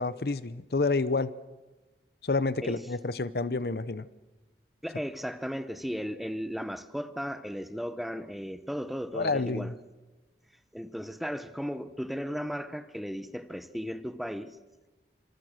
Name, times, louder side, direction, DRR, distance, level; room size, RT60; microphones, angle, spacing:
voice 1, 0.0-1.3 2.2-4.1 9.1-9.7, left 3 dB, 60° left, 0.7 m, -29 dB
voice 2, 4.8-9.7 10.7-14.6, equal, ahead, 0.9 m, -35 dB
26.5 x 26.0 x 6.5 m
head